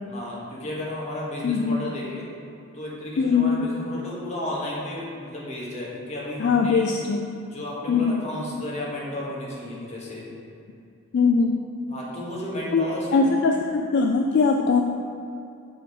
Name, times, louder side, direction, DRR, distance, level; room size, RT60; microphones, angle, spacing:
voice 1, 0.1-2.2 2.7-6.8 7.5-10.2 11.9-13.4, left 1 dB, 30° left, -5 dB, 1.4 m, -33 dB
voice 2, 1.4-1.9 3.2-3.7 6.4-7.3 7.9-8.2 11.1-11.6 12.7-12.8 13.1-14.8, left 4 dB, 50° left, 2 dB, 0.3 m, -21 dB
6.4 x 4.6 x 4.8 m, 2.5 s
head